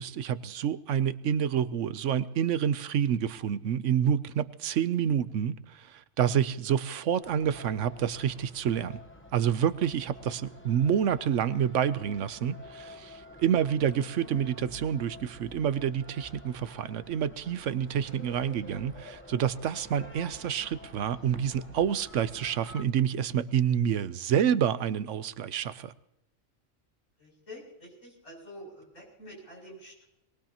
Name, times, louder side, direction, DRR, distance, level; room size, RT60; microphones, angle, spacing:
voice 1, 0.0-9.0 9.3-25.9, right 9 dB, 75° right, 14 dB, 1.0 m, -28 dB
sound 1, 7.2-22.8, left 1 dB, 10° left, 0.9 m, -49 dB
voice 2, 27.2-30.1, equal, 90° left, -2 dB, 8.0 m, -47 dB
22.0 x 20.0 x 2.9 m, 0.88 s
omnidirectional pair, 1.3 m